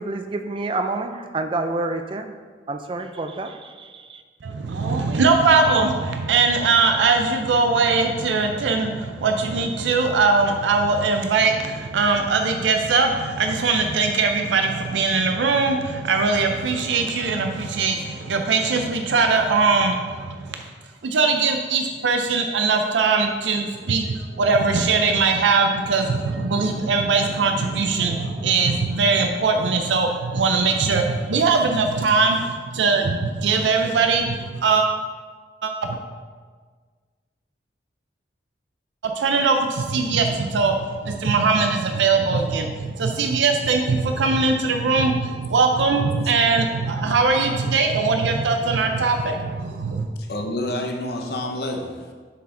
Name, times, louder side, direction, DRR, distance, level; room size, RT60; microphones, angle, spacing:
voice 1, 0.0-2.4 2.7-4.2, right 2 dB, 30° right, 7 dB, 0.3 m, -28 dB
voice 2, 4.4-20.6 21.0-34.9 35.6-36.0 39.0-50.1, right 4 dB, 90° right, 4 dB, 0.5 m, -21 dB
voice 3, 50.2-52.1, left 1 dB, 60° left, 3 dB, 0.7 m, -28 dB
6.7 x 4.8 x 3.7 m, 1.5 s
head